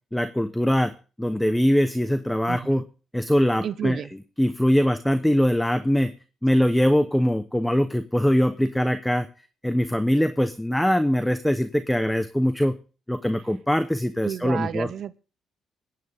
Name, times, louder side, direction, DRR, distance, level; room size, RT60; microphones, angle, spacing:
voice 1, 0.1-0.9 1.2-2.8 3.1-4.0 4.4-6.1 6.4-9.3 9.6-12.7 13.1-14.9, equal, 5° left, 11 dB, 0.9 m, -22 dB
voice 2, 2.5-2.9 3.6-4.1 6.5-6.7 14.2-15.2, right 9 dB, 60° right, 14 dB, 0.7 m, -32 dB
22.5 x 9.3 x 3.6 m, 0.36 s
cardioid pair, 90°, 0 cm